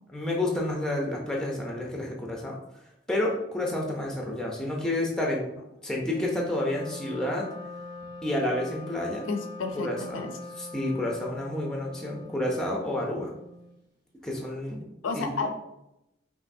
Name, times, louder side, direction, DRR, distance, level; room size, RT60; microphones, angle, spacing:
voice 1, 0.1-2.6 3.1-5.5 5.8-7.5 8.2-9.3 9.7-10.3 10.6-13.3 14.2-14.9 15.1-15.5, left 1 dB, 5° left, -1 dB, 0.6 m, -30 dB
Wind instrument woodwind instrument, 5.9-13.8, left 2 dB, 50° right, 1.0 m, -43 dB
voice 2, 9.3-9.9 10.1-10.3 15.0-15.5, left 4 dB, 90° left, 5 dB, 0.6 m, -30 dB
5.4 x 2.6 x 2.7 m, 0.87 s
head